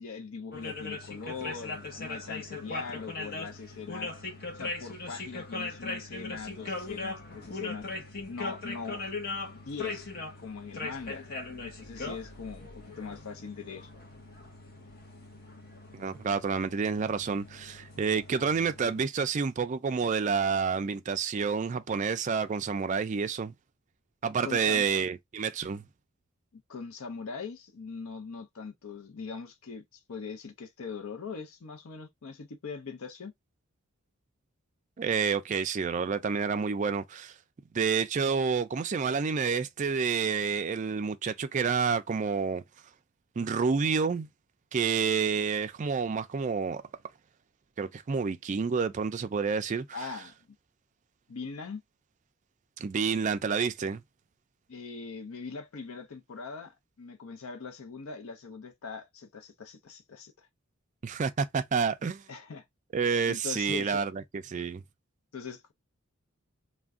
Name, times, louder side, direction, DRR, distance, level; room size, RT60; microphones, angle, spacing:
voice 1, 0.0-4.1 4.5-7.8 8.3-9.0 9.5-10.1 10.4-11.3 11.8-13.9 24.4-24.9 26.5-33.3 49.9-50.5 51.3-51.8 54.7-60.5 62.3-62.6 63.3-64.0 64.5-64.7 65.3-65.7, left 5 dB, 75° left, 0.5 m, -41 dB
sound 1, 0.5-19.0, left 3 dB, 45° left, 0.8 m, -40 dB
voice 2, 15.9-23.5 24.2-25.8 35.0-37.3 37.7-42.6 43.4-44.3 44.7-46.8 47.8-49.9 52.8-54.0 61.0-62.2 62.9-64.8, right 5 dB, 35° right, 0.3 m, -29 dB
2.5 x 2.1 x 3.5 m
head